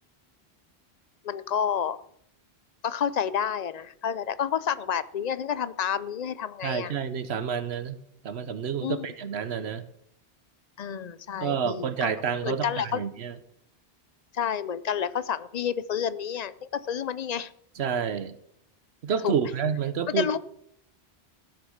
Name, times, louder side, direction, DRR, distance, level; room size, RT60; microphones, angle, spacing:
voice 1, 1.2-2.0 2.8-6.9 8.8-9.1 10.8-12.1 12.4-13.0 14.3-17.5 19.2-19.5 20.1-20.4, left 8 dB, 50° left, 16 dB, 0.5 m, -29 dB
voice 2, 6.6-8.0 8.2-9.8 11.4-13.3 17.8-18.4 19.0-20.4, right 7 dB, 75° right, 13 dB, 1.1 m, -29 dB
15.0 x 6.6 x 6.4 m, 0.73 s
omnidirectional pair, 1.1 m